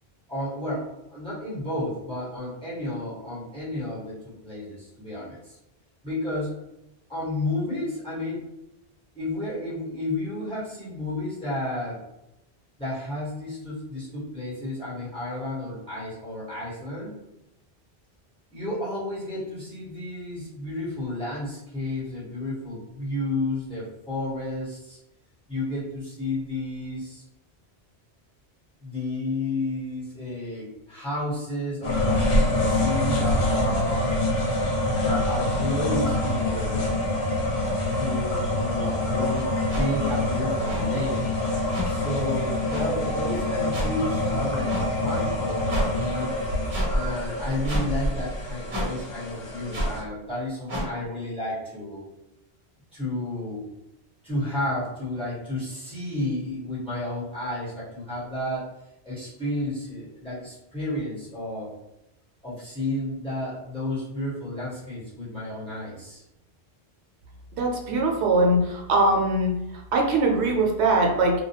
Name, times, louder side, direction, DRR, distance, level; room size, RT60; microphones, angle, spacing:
voice 1, 0.3-5.6 6.0-6.5 7.1-8.4 9.1-12.0 12.8-17.1 18.5-25.0 25.5-27.2 28.8-34.2 35.0-36.9 37.9-41.2 41.8-46.3 46.9-52.0 52.9-53.6 54.2-58.7 59.0-61.7 62.4-66.2, left 1 dB, 5° left, -10 dB, 1.1 m, -32 dB
sound 1, 31.8-50.0, left 1 dB, 70° left, 0.9 m, -26 dB
sound 2, 39.7-39.8 40.7-40.8 41.7-41.9 42.7-42.8 43.7-43.9 44.7-44.8 45.7-45.9 46.7-46.9 47.7-47.9 48.7-48.9 49.7-49.9 50.7-50.9, equal, 50° right, 0.9 m, -28 dB
voice 2, 67.6-69.5 69.9-71.3, right 2 dB, 85° right, 0 dB, 0.8 m, -21 dB
2.3 x 2.2 x 2.7 m, 0.90 s
omnidirectional pair, 1.1 m